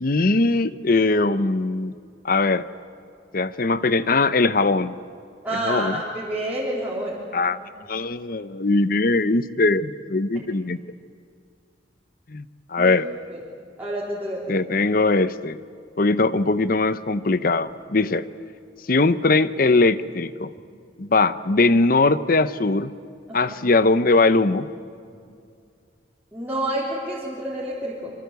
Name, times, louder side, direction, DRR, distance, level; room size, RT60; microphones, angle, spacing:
voice 1, 0.0-1.9 2.2-2.7 3.3-5.0 5.5-6.0 7.3-7.6 7.9-10.8 12.3-12.4 12.7-13.1 14.5-15.6 16.0-18.3 18.9-20.5 21.0-22.9 23.3-24.7, left 3 dB, 50° left, 14 dB, 0.8 m, -20 dB
voice 2, 5.4-7.1 12.8-12.9 13.3-13.4 13.8-14.5 23.3-23.6 26.3-28.1, right 1 dB, 10° right, -8 dB, 3.7 m, -28 dB
26.5 x 24.5 x 8.2 m, 2.3 s
head